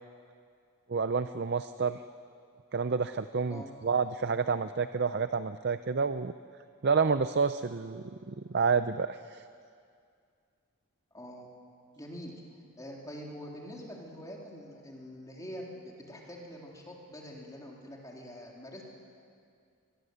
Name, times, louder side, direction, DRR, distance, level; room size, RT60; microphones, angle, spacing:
voice 1, 0.9-2.0 2.7-6.3 6.8-9.4, right 5 dB, 50° right, 11 dB, 0.5 m, -29 dB
voice 2, 11.1-11.5 12.0-12.3 12.8-18.8, equal, 15° left, -1 dB, 3.4 m, -45 dB
24.0 x 20.5 x 8.1 m, 2.3 s
head